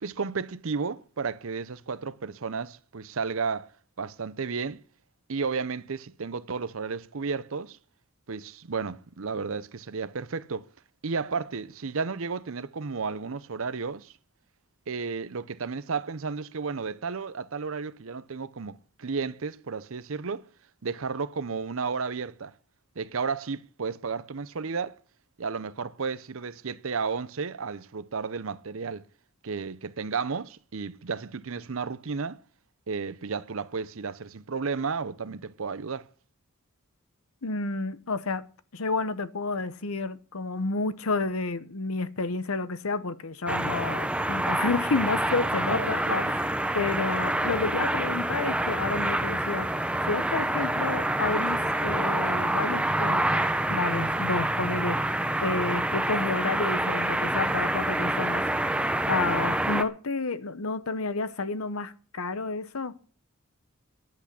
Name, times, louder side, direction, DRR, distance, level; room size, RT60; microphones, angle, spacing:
voice 1, 0.0-3.7 4.0-4.8 5.3-7.8 8.3-10.7 11.0-14.1 14.9-20.5 20.8-22.5 23.0-25.0 25.4-29.0 29.4-32.4 32.9-36.1 45.7-46.3, right 5 dB, 65° right, 0.7 m, -33 dB
voice 2, 37.4-38.4 38.7-46.5 46.7-49.7 50.1-53.4 53.7-55.0 55.4-58.4 59.1-62.9, left 3 dB, 75° left, 0.9 m, -30 dB
sound 1, 43.5-59.8, right 1 dB, 5° right, 0.7 m, -27 dB
10.5 x 8.4 x 8.6 m
head